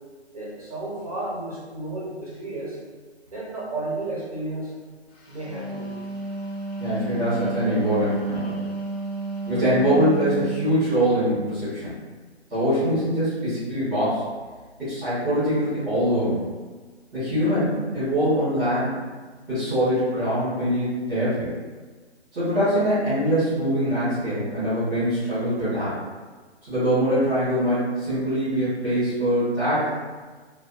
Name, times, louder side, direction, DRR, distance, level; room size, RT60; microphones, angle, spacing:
voice 1, 0.3-2.8 3.3-4.7 5.3-5.9, right 2 dB, 35° right, -6 dB, 0.6 m, -32 dB
Wind instrument woodwind instrument, 5.3-10.6, right 3 dB, 70° left, 0.6 m, -31 dB
voice 2, 6.8-8.6 9.5-11.9 12.5-14.2 14.8-16.4 17.1-18.9 19.5-21.5 22.3-25.9 26.7-29.9, equal, 15° right, -16 dB, 1.1 m, -23 dB
2.6 x 2.2 x 2.3 m, 1.4 s
hypercardioid pair, 170°, 34 cm